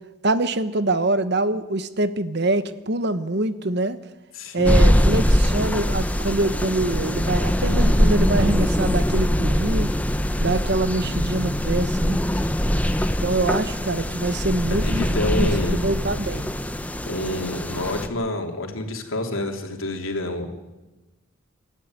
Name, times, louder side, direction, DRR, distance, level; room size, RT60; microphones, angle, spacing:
voice 1, 0.2-4.0 4.5-9.9 10.4-12.2 13.2-15.1 15.6-16.5, right 2 dB, 50° right, 12 dB, 1.1 m, -24 dB
voice 2, 4.3-4.8 14.7-15.8 17.0-20.5, left 1 dB, 75° left, 3 dB, 3.2 m, -28 dB
sound 1, 4.6-18.1, equal, 5° left, 0.9 m, -22 dB
28.0 x 13.5 x 9.7 m, 1.1 s
head